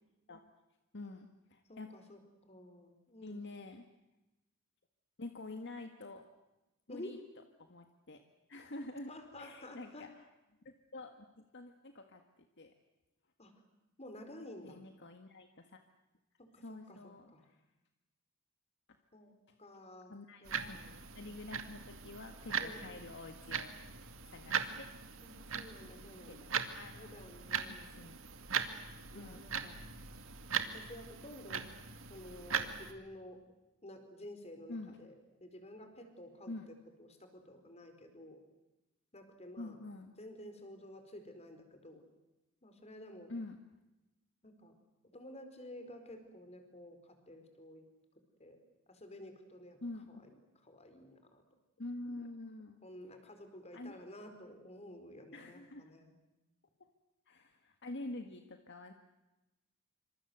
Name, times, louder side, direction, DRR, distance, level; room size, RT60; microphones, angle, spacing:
voice 1, 0.9-1.9 3.2-3.8 5.2-6.3 6.9-7.2 7.6-8.2 8.5-9.1 9.4-10.2 10.6-12.2 12.6-12.7 14.6-15.8 16.6-17.6 20.1-23.7 24.0-24.9 26.3-26.4 26.7-27.1 27.5-28.2 29.1-29.5 34.7-35.0 36.5-36.7 39.6-40.1 43.3-43.6 49.8-50.1 51.8-52.8 53.7-54.0 55.3-55.9 57.3-58.9, left 2 dB, 60° left, 6 dB, 1.7 m, -47 dB
voice 2, 1.7-3.4 6.9-7.2 9.1-10.1 13.4-13.5 14.0-14.8 16.4-17.5 19.1-19.3 19.6-20.1 20.4-20.9 22.6-23.0 25.2-26.5 26.9-27.9 29.1-29.7 30.7-31.6 32.1-33.4 33.8-35.1 35.4-38.4 39.1-39.8 40.2-42.0 42.6-43.3 44.4-44.7 45.1-47.9 48.4-48.6 48.9-49.8 50.1-50.2 50.6-51.4 52.8-56.1, left 1 dB, 30° left, 7 dB, 4.8 m, -51 dB
sound 1, 20.5-32.9, right 6 dB, 70° right, 2.3 m, -40 dB
27.0 x 26.0 x 8.1 m, 1.0 s
head